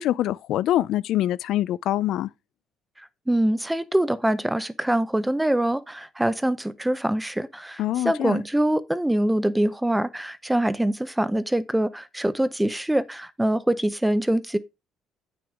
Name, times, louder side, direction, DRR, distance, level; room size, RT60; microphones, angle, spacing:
voice 1, 0.0-2.3 7.8-8.4, left 13 dB, 70° left, 0.4 m, -24 dB
voice 2, 3.0-14.6, right 1 dB, 5° right, 0.6 m, -24 dB
8.8 x 6.1 x 3.6 m
cardioid pair, 140°, 0 cm